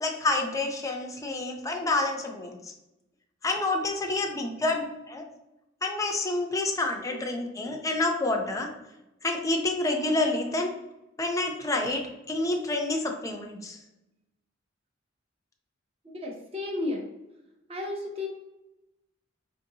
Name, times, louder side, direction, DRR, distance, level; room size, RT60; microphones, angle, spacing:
voice 1, 0.0-2.7 3.4-5.2 5.8-8.7 9.2-10.7 11.2-13.8, left 2 dB, 15° left, 2 dB, 0.5 m, -28 dB
voice 2, 16.2-17.1 17.7-18.3, left 2 dB, 30° right, 0 dB, 0.7 m, -32 dB
4.5 x 2.6 x 2.7 m, 0.93 s
head